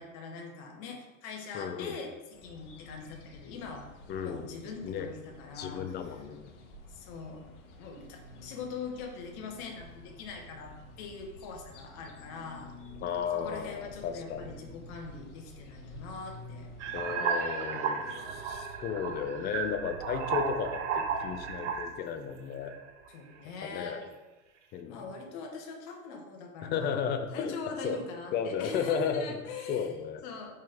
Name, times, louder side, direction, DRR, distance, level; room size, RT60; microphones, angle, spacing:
voice 1, 0.0-3.9 4.2-5.8 6.9-7.4 7.8-12.7 13.3-16.7 17.7-18.4 23.1-24.0 24.8-29.9 30.2-30.5, left 4 dB, 45° left, 2 dB, 1.4 m, -42 dB
voice 2, 1.5-2.0 4.1-5.1 5.5-6.5 13.0-14.5 16.9-22.7 23.6-24.1 24.7-25.0 26.6-28.0 28.3-30.2, left 7 dB, 25° left, 7 dB, 0.6 m, -34 dB
sound 1, 2.3-17.2, left 2 dB, 60° left, 1.2 m, -50 dB
sound 2, 16.8-22.1 22.7-23.1, right 6 dB, 60° right, 0.9 m, -33 dB
5.3 x 5.2 x 3.6 m, 1.1 s
hypercardioid pair, 95°, 41 cm